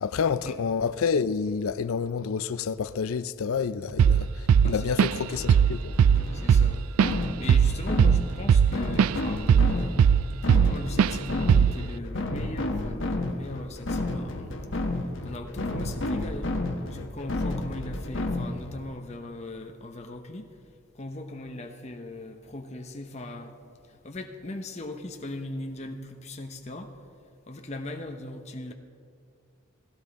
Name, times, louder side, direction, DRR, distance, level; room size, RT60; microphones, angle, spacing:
voice 1, 0.0-5.9, left 6 dB, 80° left, 0.4 m, -28 dB
Drum kit / Drum, 4.0-4.2 4.5-5.2 5.5-5.7 6.0-9.2 9.5-10.7 11.0-11.2 11.5-11.8, right 7 dB, 85° right, 0.3 m, -19 dB
voice 2, 4.6-5.2 6.3-6.8 7.1-10.1 10.6-14.5 15.2-16.5 16.9-20.5 20.9-23.6 23.9-26.9 27.5-28.7, left 2 dB, 30° left, 0.8 m, -39 dB
sound 1, 5.3-18.8, left 2 dB, 60° left, 1.2 m, -31 dB
17.0 x 16.0 x 4.1 m
head